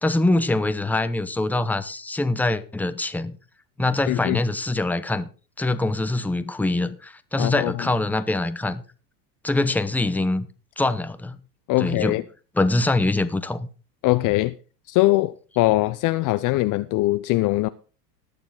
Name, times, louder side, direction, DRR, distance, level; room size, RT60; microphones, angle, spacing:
voice 1, 0.0-3.4 3.8-5.3 5.6-8.8 9.4-10.5 10.8-11.4 11.8-12.2 12.5-13.7, left 2 dB, 5° left, 0.8 m, -24 dB
voice 2, 4.1-4.4 7.4-7.7 11.7-12.2 14.0-14.5 14.9-17.7, left 18 dB, 40° left, 0.6 m, -21 dB
20.0 x 6.8 x 3.9 m
hypercardioid pair, 105°, 49 cm